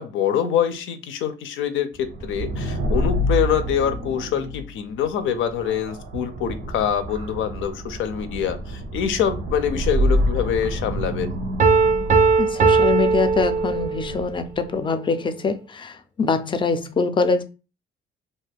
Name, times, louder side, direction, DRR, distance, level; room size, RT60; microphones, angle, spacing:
voice 1, 0.0-11.4, left 9 dB, 80° left, 0.5 m, -25 dB
sound 1, 2.0-14.6, equal, 90° right, 0.7 m, -28 dB
Piano, 11.6-14.2, right 4 dB, 40° right, 0.5 m, -18 dB
voice 2, 12.4-17.4, left 4 dB, 25° left, 0.4 m, -24 dB
2.4 x 2.1 x 3.4 m
cardioid pair, 90°, 20 cm